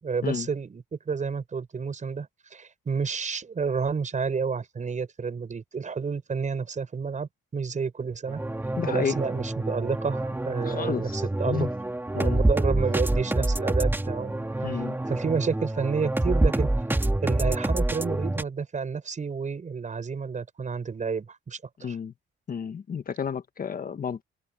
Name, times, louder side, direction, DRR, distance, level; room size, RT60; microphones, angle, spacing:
voice 1, 0.0-8.4 8.9-11.7 12.1-14.8 15.1-16.7 17.2-22.0, right 5 dB, 40° right, 7.6 m, -30 dB
sound 1, 8.3-18.4, right 1 dB, 10° right, 2.6 m, -27 dB
voice 2, 8.8-9.2 10.6-11.7 12.1-12.5 14.6-15.0 21.8-22.1 22.5-24.2, left 7 dB, 45° left, 1.5 m, -31 dB
cardioid pair, 90°, 20 cm